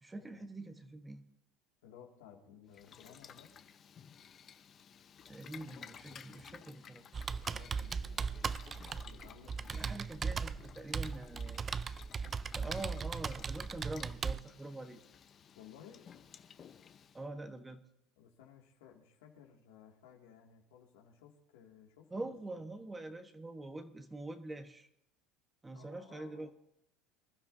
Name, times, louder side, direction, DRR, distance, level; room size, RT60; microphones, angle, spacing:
voice 1, 0.0-1.3 5.3-7.0 9.7-11.7 12.5-15.0 17.1-17.8 22.1-24.9 25.6-26.5, right 2 dB, 15° right, 8 dB, 1.1 m, -45 dB
voice 2, 1.8-3.5 7.4-8.5 9.0-10.1 15.6-16.1 18.2-22.6 25.8-26.5, left 8 dB, 80° left, 1 dB, 2.2 m, -58 dB
Boiling, 2.7-17.2, left 8 dB, 40° left, 0.8 m, -56 dB
Computer keyboard, 7.1-14.4, right 5 dB, 30° right, 0.4 m, -38 dB
25.0 x 12.0 x 2.7 m, 0.80 s
supercardioid pair, 95°, 0 cm